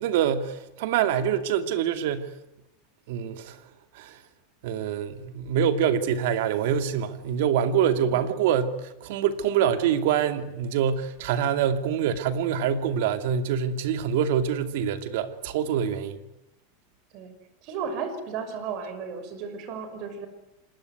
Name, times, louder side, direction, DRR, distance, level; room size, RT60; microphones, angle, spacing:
voice 1, 0.0-2.3 3.1-3.6 3.9-4.2 4.6-16.2, right 8 dB, 65° right, 9 dB, 2.5 m, -25 dB
voice 2, 17.6-20.3, right 6 dB, 45° right, 10 dB, 5.9 m, -34 dB
26.5 x 20.5 x 9.5 m, 0.89 s
supercardioid pair, 150°, 0 cm